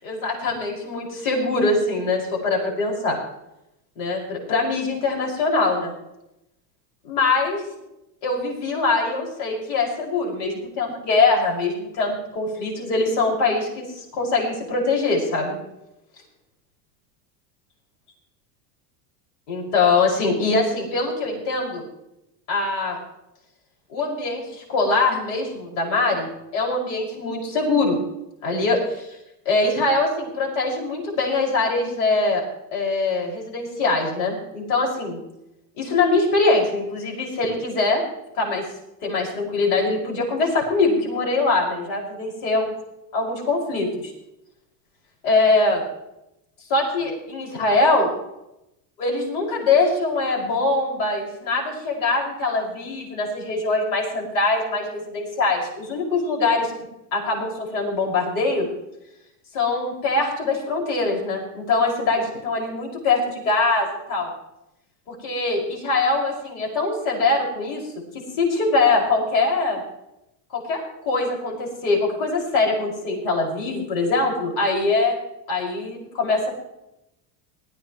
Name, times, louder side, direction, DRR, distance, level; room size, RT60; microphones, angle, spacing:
voice 1, 0.0-3.2 4.0-5.9 7.0-7.6 8.2-15.6 19.5-21.8 22.5-23.0 23.9-28.0 28.4-29.2 29.4-32.4 32.7-35.2 35.8-38.0 38.3-38.6 39.0-42.7 43.1-44.1 45.2-45.8 46.7-48.1 49.0-56.7 57.1-58.7 59.5-64.3 65.1-67.8 68.4-69.8 70.5-75.1 75.5-76.5, left 3 dB, 70° left, -1 dB, 6.1 m, -23 dB
19.5 x 14.5 x 3.2 m, 0.87 s
supercardioid pair, 125°, 48 cm